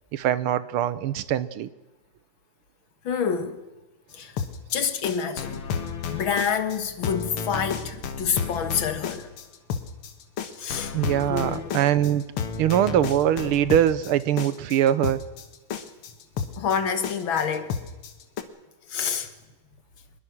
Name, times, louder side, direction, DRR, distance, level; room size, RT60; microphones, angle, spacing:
voice 1, 0.1-1.7 10.9-12.2 12.6-15.2, right 11 dB, 85° right, 1.8 m, -22 dB
voice 2, 3.0-3.6 4.1-4.3 4.7-5.6 6.1-9.3 10.6-10.9 11.3-11.8 16.6-17.7 18.9-19.3, left 7 dB, 70° left, 2.3 m, -27 dB
sound 1, 4.2-18.4, left 6 dB, 85° left, 2.3 m, -32 dB
23.5 x 21.5 x 6.2 m
omnidirectional pair, 2.3 m